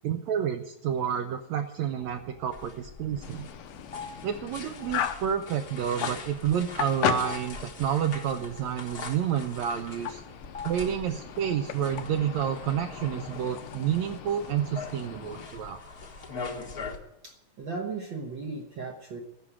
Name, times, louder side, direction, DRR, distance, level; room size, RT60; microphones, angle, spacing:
voice 1, 0.0-3.5 4.2-10.2 10.6-15.8, right 9 dB, 85° right, 5 dB, 1.5 m, -29 dB
sound 1, 2.0-11.7, left 4 dB, 30° left, 1.2 m, -48 dB
sound 2, 2.5-17.0, left 4 dB, 55° left, 1.0 m, -43 dB
sound 3, 3.2-15.5, left 9 dB, 75° left, 2.3 m, -37 dB
voice 2, 17.2-19.2, right 4 dB, 65° right, 2 dB, 1.1 m, -36 dB
14.5 x 6.1 x 9.9 m, 0.85 s
omnidirectional pair, 4.0 m